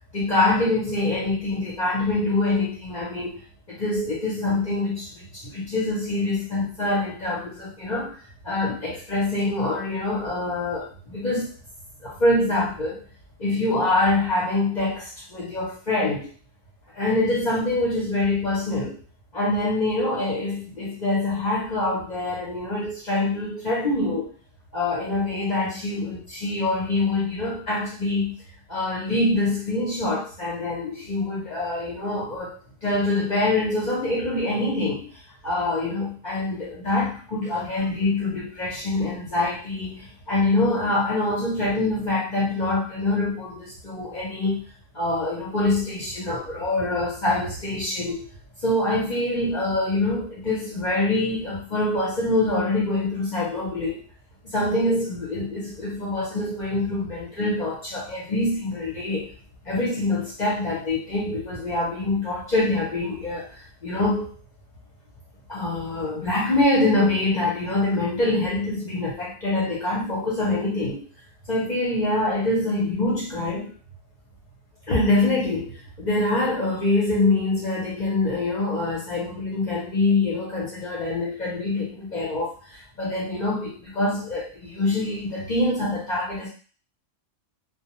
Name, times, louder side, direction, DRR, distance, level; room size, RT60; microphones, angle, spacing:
voice 1, 0.1-3.4 3.7-8.1 8.4-11.5 12.0-13.0 13.4-16.3 16.9-19.0 19.3-24.3 24.7-28.3 28.7-32.5 32.8-35.1 35.4-44.6 44.9-48.2 48.6-54.0 54.4-59.3 59.6-64.3 65.5-71.0 71.5-73.7 74.9-86.5, left 2 dB, 45° left, -5 dB, 0.6 m, -25 dB
2.2 x 2.1 x 2.9 m, 0.38 s
omnidirectional pair, 1.4 m